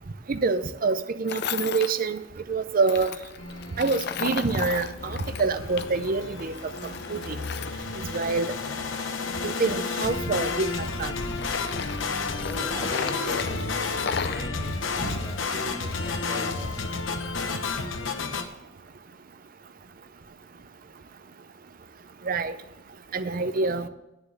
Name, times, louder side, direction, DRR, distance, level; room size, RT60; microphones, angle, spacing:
voice 1, 0.3-2.2 2.5-3.1 3.8-6.5 7.1-7.4 8.1-8.5 9.4-11.1 15.0-15.1 22.3-22.5 23.1-23.9, right 4 dB, 45° right, 11 dB, 0.6 m, -26 dB
Tools, 1.3-1.9 2.8-6.1 6.4-8.7 9.3-10.9 11.3-14.5, left 6 dB, 55° left, 0.5 m, -35 dB
sound 1, 3.4-18.4, left 4 dB, 80° left, 1.0 m, -31 dB
voice 2, 12.5-16.8, equal, 10° right, -2 dB, 3.7 m, -40 dB
9.3 x 6.9 x 6.8 m, 0.95 s
head